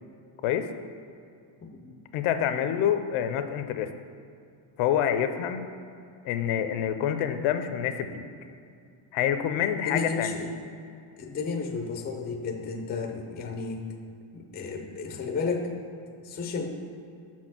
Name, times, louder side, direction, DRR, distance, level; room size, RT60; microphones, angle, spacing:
voice 1, 2.1-3.9 4.8-5.7 6.2-8.3 9.1-10.4, left 9 dB, 80° left, 9 dB, 0.6 m, -27 dB
voice 2, 9.8-10.6 11.2-13.9 14.3-15.7 16.2-16.7, left 4 dB, 20° left, 4 dB, 0.4 m, -32 dB
5.8 x 4.4 x 6.0 m, 2.4 s
cardioid pair, 155°, 49 cm